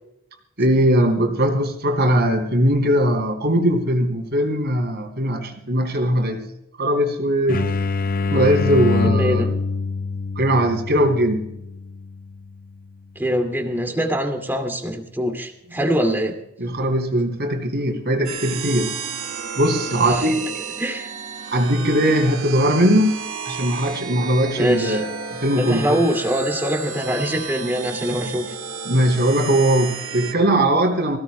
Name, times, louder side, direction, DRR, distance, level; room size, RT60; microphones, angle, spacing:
voice 1, 0.6-6.4 6.8-7.7 8.3-9.5 10.4-11.5 16.6-18.9 19.6-20.5 21.5-26.0 28.8-31.2, right 1 dB, 50° right, 5 dB, 3.0 m, -20 dB
sound 1, 7.5-13.0, left 4 dB, 40° left, 0.5 m, -25 dB
voice 2, 9.0-9.5 13.2-16.3 20.0-20.2 20.8-21.1 24.6-25.0 25.5-28.5, equal, 10° right, 4 dB, 2.2 m, -23 dB
sound 2, 18.2-30.3, right 5 dB, 75° right, 1.8 m, -32 dB
25.5 x 16.5 x 2.2 m, 0.84 s
head